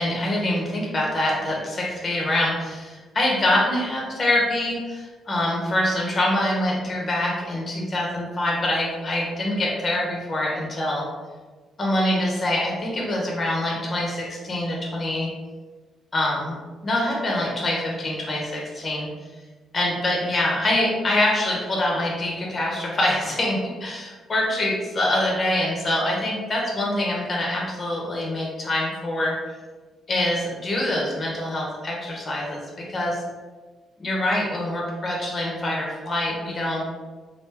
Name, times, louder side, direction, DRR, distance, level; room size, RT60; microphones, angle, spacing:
voice 1, 0.0-11.0 11.8-15.3 16.1-16.5 16.8-19.1 19.7-29.4 30.1-32.6 32.9-33.2 34.0-36.8, left 1 dB, 35° left, -2 dB, 1.1 m, -25 dB
3.1 x 2.6 x 3.3 m, 1.3 s
cardioid pair, 90°, 0 cm